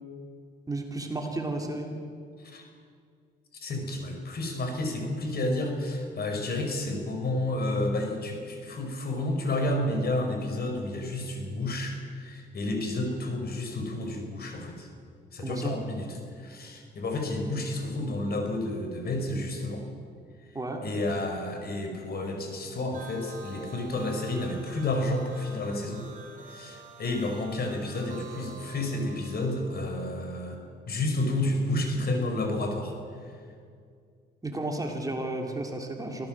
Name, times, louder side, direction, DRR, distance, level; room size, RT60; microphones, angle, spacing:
voice 1, 0.7-1.9 15.4-15.8 20.5-20.8 34.4-36.3, right 2 dB, 15° right, 2 dB, 3.3 m, -33 dB
voice 2, 3.5-14.9 15.3-19.8 20.8-26.1 26.4-30.6 30.8-32.9 33.2-33.3, left 1 dB, 50° left, 4 dB, 5.1 m, -31 dB
sound 1, 22.9-29.8, right 4 dB, 40° right, 4.4 m, -46 dB
24.5 x 17.0 x 7.6 m, 2.2 s
cardioid pair, 90°, 20 cm